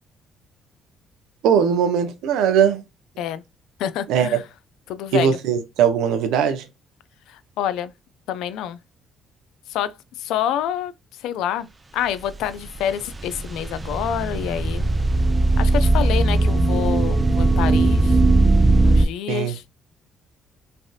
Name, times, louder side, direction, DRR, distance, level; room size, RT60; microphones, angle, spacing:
voice 1, 1.4-2.8 4.1-4.4 5.1-6.6 19.3-19.5, right 8 dB, 85° right, 0.6 m, -19 dB
voice 2, 3.8-4.4 4.9-5.4 7.3-7.9 8.3-8.8 9.7-10.9 11.2-11.7 11.9-14.8 15.6-18.2 18.8-19.6, left 10 dB, 85° left, 0.3 m, -27 dB
sound 1, 12.3-19.1, right 2 dB, 20° right, 0.4 m, -18 dB
3.2 x 2.6 x 2.3 m
cardioid pair, 110°, 0 cm